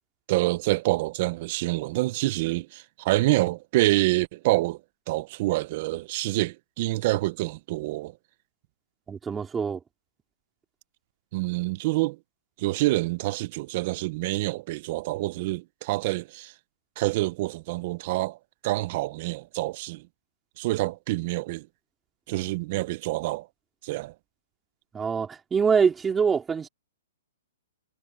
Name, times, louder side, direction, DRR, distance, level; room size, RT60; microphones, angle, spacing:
voice 1, 0.3-4.8 5.1-8.1 11.3-12.2 12.6-16.5 17.0-18.4 18.6-20.0 20.6-21.7 22.3-23.5 23.8-24.1, right 19 dB, 40° right, 0.8 m, -27 dB
voice 2, 9.1-9.8 24.9-26.7, right 6 dB, 10° right, 3.6 m, -24 dB
hypercardioid pair, 155°, 0 cm